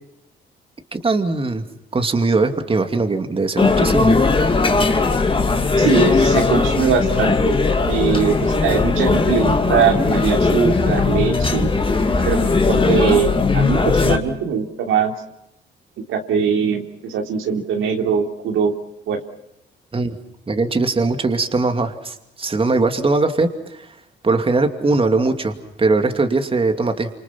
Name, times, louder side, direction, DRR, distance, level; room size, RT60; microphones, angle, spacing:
voice 1, 0.9-1.6 1.9-4.2 19.9-20.2 20.5-23.9 24.2-27.1, right 3 dB, 25° right, 6 dB, 2.7 m, -20 dB
sound 1, 3.6-14.2, left 3 dB, 25° left, 2.8 m, -18 dB
voice 2, 5.8-7.6 7.9-11.7 12.2-15.1 16.0-18.7 19.1-19.2, right 6 dB, 85° right, 3 dB, 3.3 m, -21 dB
28.5 x 26.5 x 5.9 m, 0.82 s
cardioid pair, 90°, 20 cm